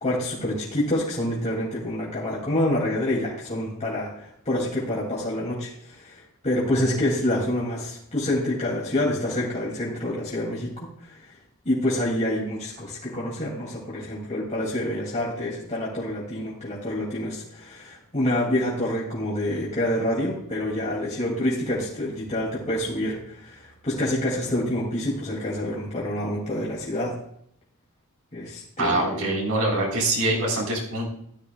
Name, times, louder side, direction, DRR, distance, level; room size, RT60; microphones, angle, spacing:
voice 1, 0.0-11.2 11.6-27.2 28.3-29.3, left 1 dB, 35° left, -5 dB, 2.7 m, -27 dB
voice 2, 28.8-31.1, right 2 dB, 80° right, -2 dB, 4.4 m, -24 dB
14.0 x 11.5 x 2.4 m, 0.70 s
head